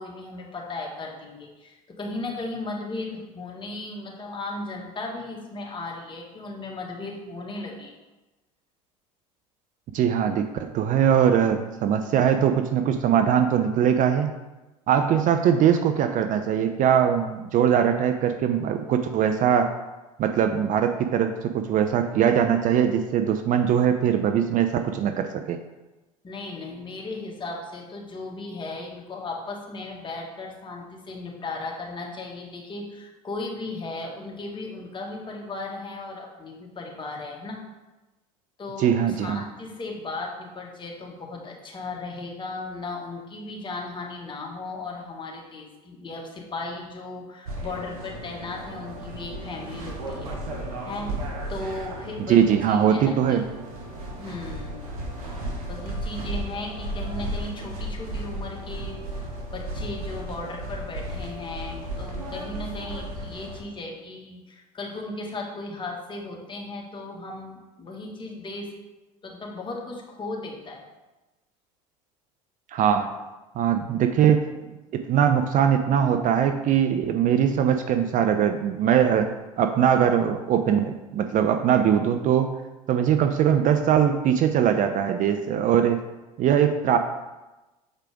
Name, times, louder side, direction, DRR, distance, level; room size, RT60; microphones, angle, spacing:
voice 1, 0.0-8.0 26.2-37.6 38.6-50.3 50.8-51.1 51.5-53.4 54.2-54.9 55.7-59.0 59.5-68.7 69.2-70.8, left 2 dB, 25° left, -1 dB, 1.7 m, -36 dB
voice 2, 9.9-14.3 14.9-19.7 20.2-25.6 38.8-39.4 52.3-53.4 72.7-73.1 73.6-74.4 74.9-79.3 79.6-82.5 82.9-86.0 86.4-87.0, right 8 dB, 45° right, 7 dB, 0.6 m, -21 dB
sound 1, 47.4-63.6, right 1 dB, 80° right, 1.4 m, -34 dB
7.4 x 4.9 x 3.6 m, 1.1 s
hypercardioid pair, 70°, 19 cm